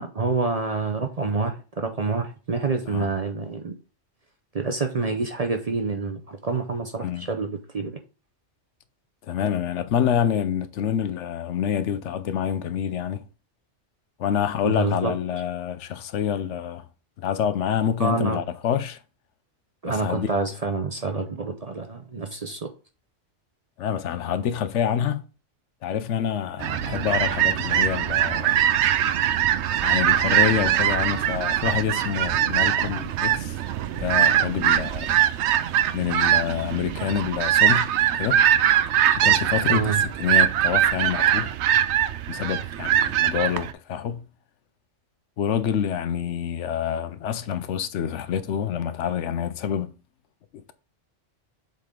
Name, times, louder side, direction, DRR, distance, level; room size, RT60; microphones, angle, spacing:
voice 1, 0.0-3.8 4.5-7.9 14.6-15.4 18.0-18.4 19.8-22.7 39.7-40.0, right 3 dB, 40° right, 0.6 m, -27 dB
voice 2, 9.3-13.2 14.2-16.8 17.2-19.0 19.9-20.3 23.8-25.2 25.8-28.6 29.8-33.6 33.9-35.2 35.9-38.4 39.2-41.5 42.3-44.3 45.4-49.9, left 8 dB, 75° left, 0.9 m, -27 dB
sound 1, 26.6-43.7, right 11 dB, 70° right, 0.8 m, -22 dB
7.5 x 4.1 x 3.7 m
omnidirectional pair, 1.3 m